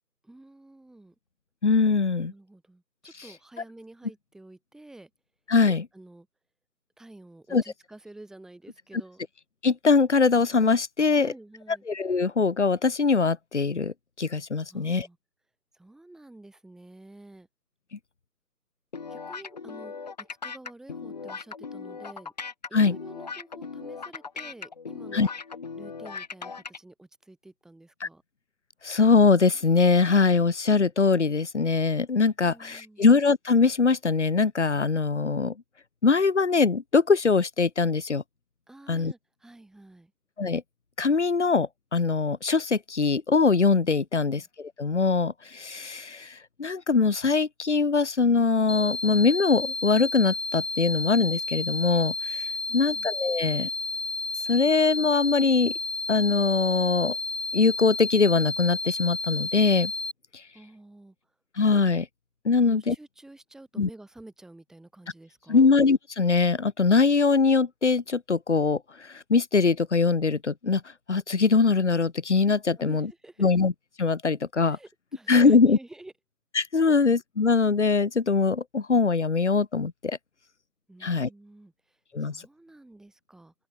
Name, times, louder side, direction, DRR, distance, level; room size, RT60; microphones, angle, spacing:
voice 1, 0.2-1.1 2.2-5.1 5.9-6.3 7.0-9.2 11.1-11.9 14.7-15.2 15.7-17.5 19.1-22.3 22.7-25.3 25.8-28.2 32.4-33.1 38.7-40.1 44.2-44.5 52.7-53.1 60.5-61.3 62.6-65.7 72.8-73.5 74.6-76.1 76.8-77.1 80.9-83.5, right 2 dB, ahead, 6.9 m, -49 dB
voice 2, 1.6-2.3 5.5-5.9 7.5-7.6 9.6-11.3 11.9-15.1 22.7-22.9 25.1-25.3 28.0-28.1 28.8-35.5 36.0-38.2 38.9-39.1 40.4-40.6 41.0-52.5 52.7-53.7 54.5-55.7 56.1-57.1 57.5-59.9 61.6-62.1 62.4-62.9 63.8-63.9 65.5-70.8 71.1-73.1 73.4-73.7 74.0-74.8 75.3-75.8 76.6-80.2 81.0-81.3 82.1-82.4, left 4 dB, 45° left, 1.1 m, -22 dB
sound 1, 18.9-26.8, left 5 dB, 25° left, 1.6 m, -38 dB
sound 2, 48.7-60.1, left 2 dB, 75° left, 7.7 m, -32 dB
open air
figure-of-eight pair, 155°, 49 cm